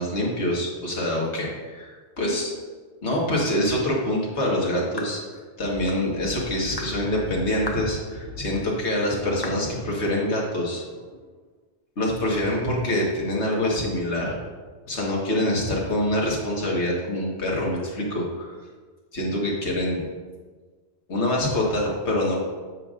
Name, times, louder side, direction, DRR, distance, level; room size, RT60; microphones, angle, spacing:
voice 1, 0.0-1.5 2.2-2.5 3.0-5.2 5.6-10.8 12.0-14.3 14.9-18.5 19.1-20.0 21.1-22.4, left 1 dB, 75° left, -3 dB, 1.8 m, -25 dB
sound 1, 5.0-5.2 5.9-6.1 6.8-7.0 7.7-7.9 8.5-8.7 9.4-9.7, left 2 dB, 25° left, 0.7 m, -35 dB
sound 2, 5.6-11.3, left 1 dB, 55° right, 0.8 m, -41 dB
9.8 x 7.0 x 2.5 m, 1.5 s
omnidirectional pair, 1.2 m